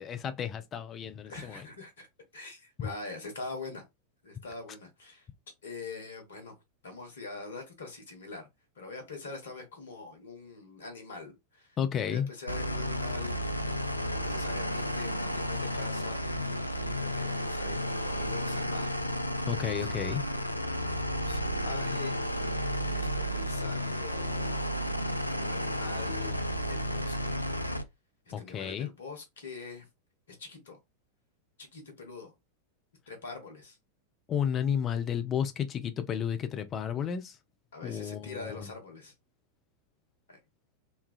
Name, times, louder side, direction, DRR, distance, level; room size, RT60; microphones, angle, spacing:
voice 1, 0.0-1.6 2.8-2.9 11.8-12.3 19.5-20.2 28.3-28.9 34.3-37.4 37.8-38.7, left 8 dB, 30° left, 0.5 m, -32 dB
voice 2, 1.3-2.1 2.3-3.8 4.2-5.3 5.6-6.5 6.8-8.5 8.8-11.7 12.0-13.4 14.1-16.3 17.0-19.1 19.7-24.6 25.2-27.5 28.3-29.9 30.3-30.8 31.7-32.3 33.1-33.8 37.7-39.1 40.3-40.4, left 3 dB, 65° left, 1.0 m, -44 dB
sound 1, 12.5-27.8, equal, 85° left, 0.3 m, -32 dB
3.1 x 2.2 x 2.3 m
figure-of-eight pair, 90°, 0 cm